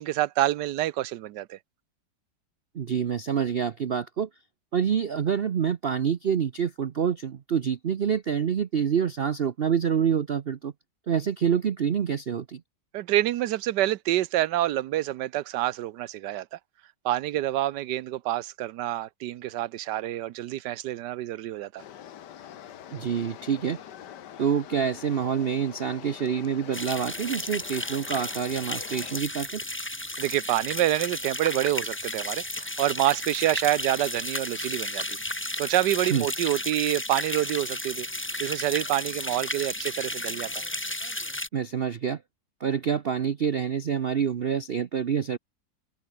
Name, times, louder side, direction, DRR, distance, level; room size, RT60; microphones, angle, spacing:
voice 1, 0.0-1.6 12.9-16.6 17.0-21.8 30.2-38.1 38.4-40.6, right 14 dB, 80° right, 1.3 m, -27 dB
voice 2, 2.7-4.3 4.7-10.7 11.1-12.6 22.9-23.8 24.4-29.6 36.1-36.3 41.5-42.2 42.6-45.4, right 7 dB, 50° right, 0.7 m, -27 dB
sound 1, 21.8-29.2, left 10 dB, 80° left, 1.7 m, -45 dB
sound 2, 26.7-41.5, left 1 dB, 10° left, 1.2 m, -33 dB
open air
omnidirectional pair, 1.8 m